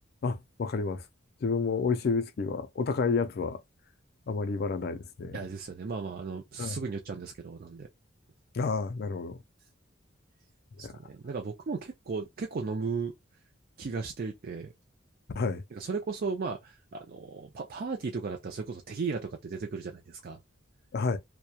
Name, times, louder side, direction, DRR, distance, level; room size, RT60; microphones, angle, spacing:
voice 1, 0.2-1.0 1.4-3.6 4.3-5.4 6.6-6.8 8.5-9.4 10.8-10.9 15.4-15.6 20.9-21.2, left 4 dB, 55° left, 0.4 m, -30 dB
voice 2, 5.3-7.9 10.8-13.1 13.8-14.7 15.7-20.4, right 4 dB, 50° right, 0.4 m, -35 dB
2.8 x 2.1 x 2.2 m
head